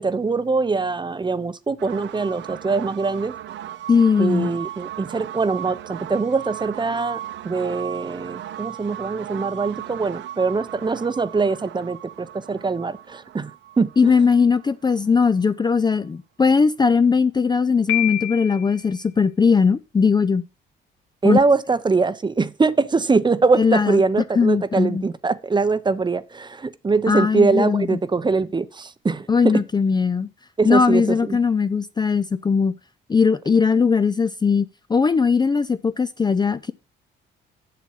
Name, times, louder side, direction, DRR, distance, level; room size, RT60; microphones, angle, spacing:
voice 1, 0.0-3.3 4.2-13.5 13.8-14.1 21.2-29.5 30.6-31.4, right 4 dB, 20° right, 0.7 m, -22 dB
sound 1, 1.8-15.4, right 12 dB, 65° right, 0.6 m, -37 dB
voice 2, 3.9-4.5 14.0-20.4 21.2-21.4 23.6-24.0 24.4-25.0 27.1-28.0 29.3-30.3 30.6-32.7 33.1-36.7, left 5 dB, 20° left, 0.4 m, -19 dB
Piano, 17.9-18.8, left 14 dB, 80° left, 1.2 m, -26 dB
7.5 x 6.8 x 5.6 m
cardioid pair, 90°, 20 cm